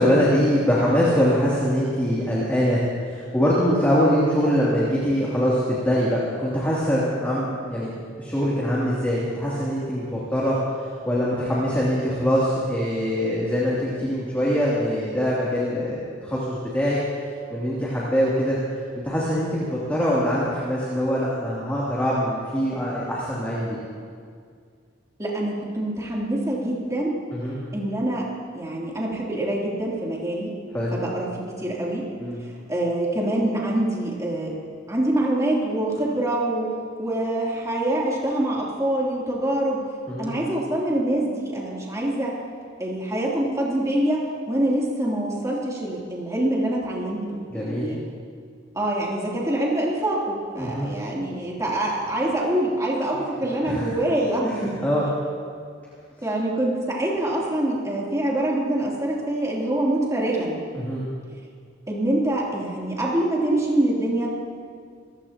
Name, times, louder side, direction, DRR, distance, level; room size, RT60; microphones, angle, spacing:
voice 1, 0.0-2.8 3.0-7.9 8.2-10.5 11.0-17.0 17.5-18.6 18.9-23.8 27.3-27.6 30.7-30.9 32.2-32.4 40.1-40.3 47.5-47.9 50.6-50.9 53.6-53.9 54.4-55.0 60.7-61.0, equal, 10° left, -8 dB, 2.8 m, -23 dB
voice 2, 25.2-27.1 27.7-28.2 28.5-30.5 30.9-31.3 31.6-32.1 32.7-34.5 34.9-36.7 37.0-39.8 40.2-42.3 42.8-47.3 47.5-48.0 48.7-54.4 56.2-60.6 61.9-64.3, right 1 dB, 15° right, -5 dB, 3.1 m, -25 dB
26.5 x 15.5 x 2.9 m, 2.1 s
head